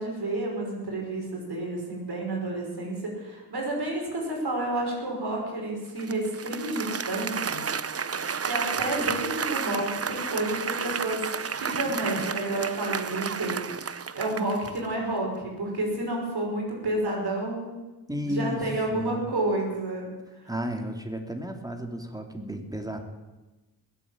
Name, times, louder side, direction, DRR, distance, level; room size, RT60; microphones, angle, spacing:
voice 1, 0.0-7.7 8.4-17.8 18.3-20.1, right 1 dB, 70° right, -1 dB, 5.6 m, -30 dB
Applause, 6.0-14.9, right 6 dB, 35° right, 0.7 m, -32 dB
voice 2, 18.1-18.6 18.9-19.3 20.5-23.0, equal, 10° right, 4 dB, 2.7 m, -33 dB
20.0 x 8.2 x 8.8 m, 1.1 s
cardioid pair, 45°, 40 cm